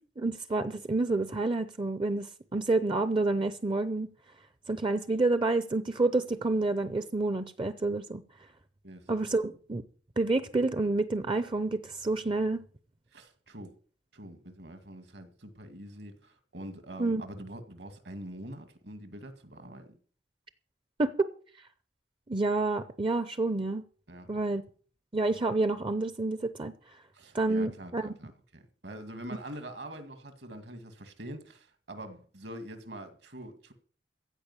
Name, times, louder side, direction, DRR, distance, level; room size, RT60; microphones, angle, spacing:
voice 1, 0.2-4.1 4.7-8.2 9.1-9.8 10.2-12.6 17.0-17.2 21.0-21.3 22.3-23.8 24.3-24.6 25.1-26.7 27.3-28.1, right 2 dB, 30° right, 0.6 m, -28 dB
voice 2, 13.1-13.8 14.1-20.0 24.1-24.3 27.1-33.7, right 1 dB, 65° right, 2.1 m, -44 dB
15.5 x 5.2 x 9.8 m
head